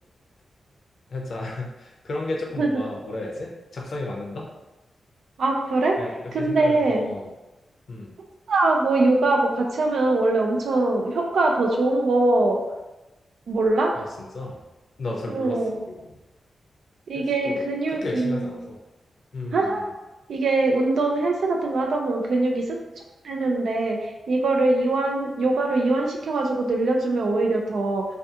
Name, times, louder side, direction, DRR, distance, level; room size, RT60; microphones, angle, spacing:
voice 1, 1.1-4.5 6.0-7.3 7.9-8.2 13.9-14.6 15.0-16.1 17.1-18.8 19.3-19.9, left 2 dB, 55° left, -1 dB, 0.5 m, -33 dB
voice 2, 5.4-6.0 6.3-7.1 8.5-12.6 13.5-13.9 15.3-15.8 17.1-18.5 19.5-19.8 20.3-22.8 23.2-28.1, right 2 dB, 75° right, 1 dB, 0.4 m, -22 dB
2.4 x 2.3 x 2.7 m, 1.0 s
wide cardioid pair, 135°, 0 cm